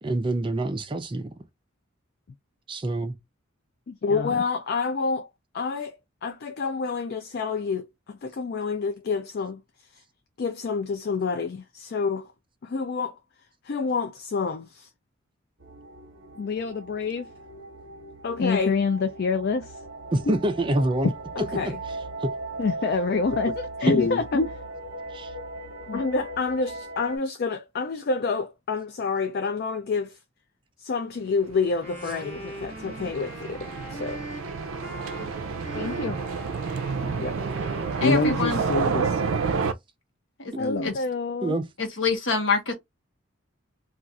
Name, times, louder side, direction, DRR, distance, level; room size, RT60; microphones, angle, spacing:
voice 1, 0.0-1.3 2.7-3.2 20.1-21.1 21.4-21.7 22.2-22.3 23.8-23.9 25.1-25.3 41.4-41.6, right 1 dB, 25° right, 0.4 m, -26 dB
voice 2, 3.9-5.3 5.5-6.0 6.2-9.6 10.4-12.3 12.6-13.2 13.7-14.9 16.4-17.3 18.2-19.7 20.3-20.4 21.4-21.7 22.6-24.5 25.9-30.1 30.8-33.6 33.9-34.2 35.7-36.2 37.2-37.4 38.0-39.2 40.6-41.5, left 4 dB, 50° left, 0.4 m, -27 dB
sound 1, 15.6-27.2, right 2 dB, 60° right, 0.9 m, -38 dB
Wind instrument woodwind instrument, 31.7-39.4, equal, 10° left, 1.2 m, -42 dB
sound 2, 31.8-39.7, right 5 dB, 80° right, 0.4 m, -29 dB
voice 3, 38.0-38.6 40.8-40.9 41.8-42.7, left 4 dB, 65° left, 1.0 m, -25 dB
2.4 x 2.4 x 3.9 m
head